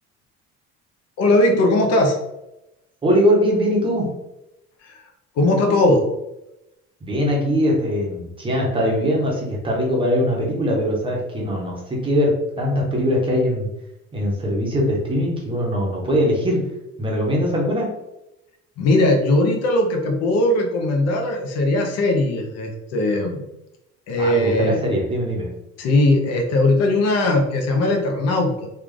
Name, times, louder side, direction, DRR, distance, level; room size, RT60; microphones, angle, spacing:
voice 1, 1.2-2.2 4.8-5.0 5.4-6.1 18.8-23.4 24.1-24.8 25.8-28.7, left 1 dB, 60° left, 3 dB, 0.7 m, -19 dB
voice 2, 3.0-4.1 7.0-13.7 14.1-16.6 17.0-17.9 24.2-25.5, equal, 20° right, -2 dB, 0.8 m, -21 dB
3.2 x 2.4 x 3.7 m, 0.92 s
cardioid pair, 160°, 29 cm